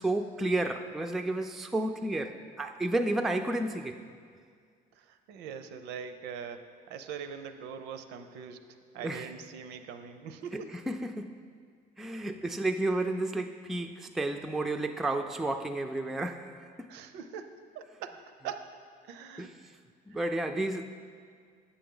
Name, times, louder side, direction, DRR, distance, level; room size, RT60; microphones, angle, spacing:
voice 1, 0.0-4.0 9.0-9.3 10.5-11.3 12.0-16.9 19.4-19.5 20.1-20.8, right 2 dB, ahead, 5 dB, 0.3 m, -31 dB
voice 2, 5.0-10.8 16.9-18.8 19.1-19.5 20.1-20.7, right 7 dB, 85° right, 9 dB, 0.5 m, -43 dB
8.6 x 6.9 x 3.8 m, 2.1 s
cardioid pair, 110°, 17 cm